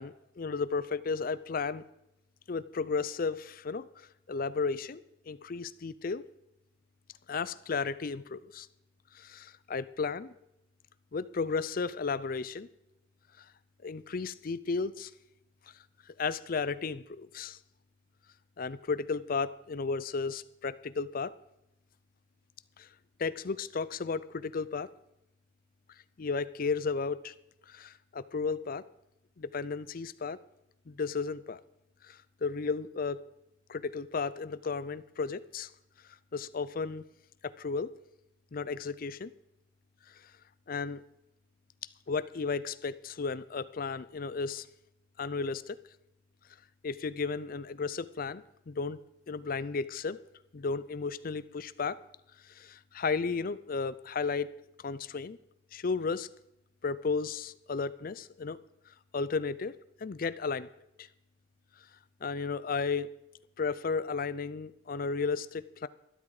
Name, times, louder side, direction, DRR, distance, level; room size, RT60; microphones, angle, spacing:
voice 1, 0.0-1.8 2.5-6.2 7.3-8.7 9.1-10.3 11.1-12.7 13.8-15.1 16.2-17.6 18.6-21.3 22.8-22.9 23.2-24.9 26.2-27.3 27.7-28.8 29.4-30.4 30.9-31.6 32.0-33.2 33.7-35.7 36.3-37.0 37.6-37.9 38.5-39.3 40.1-40.2 40.7-41.0 42.1-44.7 45.2-45.8 46.8-49.0 49.3-50.2 50.5-52.0 52.5-54.5 54.8-55.4 55.7-56.3 56.8-58.6 59.1-59.7 60.0-60.7 61.0-61.1 62.2-63.1 63.6-65.9, left 4 dB, 50° left, 16 dB, 0.5 m, -34 dB
12.5 x 12.0 x 4.9 m, 0.86 s
head